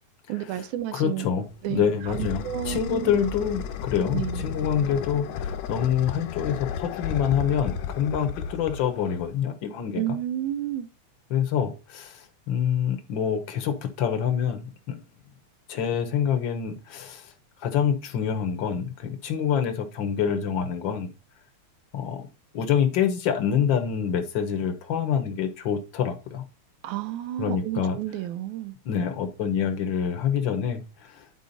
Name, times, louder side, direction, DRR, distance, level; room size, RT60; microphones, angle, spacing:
voice 1, 0.3-1.3 1.6-3.2 4.1-4.6 10.0-10.9 26.8-28.8, right 12 dB, 85° right, 2.2 m, -31 dB
voice 2, 0.9-10.0 11.3-15.0 15.7-17.3 17.6-21.1 21.9-22.3 22.5-26.4 27.4-28.0 28.8-31.2, left 8 dB, 65° left, 1.2 m, -26 dB
sound 1, 1.5-9.4, left 7 dB, 80° left, 2.0 m, -34 dB
10.5 x 4.6 x 4.1 m
omnidirectional pair, 3.4 m